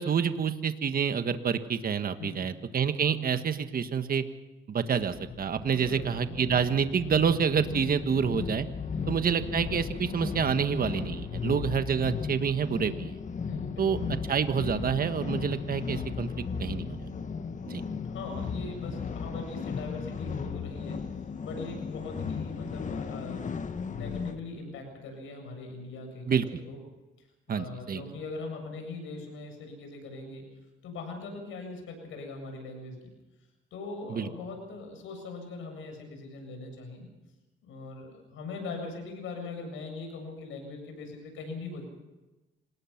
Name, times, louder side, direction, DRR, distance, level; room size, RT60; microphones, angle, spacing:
voice 1, 0.0-4.2 4.7-8.7 9.1-13.2 13.8-14.0 14.3-17.1 17.7-17.8 26.3-26.6 27.5-28.0 34.1-34.3, right 7 dB, 45° right, 9 dB, 1.5 m, -28 dB
voice 2, 2.2-2.5 5.7-6.2 8.9-9.2 13.5-14.2 18.0-21.0 21.4-23.5 23.9-26.8 27.5-30.5 30.8-33.0 33.7-37.1 37.6-41.8, left 3 dB, 80° left, 4 dB, 7.7 m, -41 dB
sound 1, 5.1-24.4, left 6 dB, 40° left, 1.3 m, -36 dB
26.0 x 19.5 x 6.0 m, 1.1 s
cardioid pair, 90°, 20 cm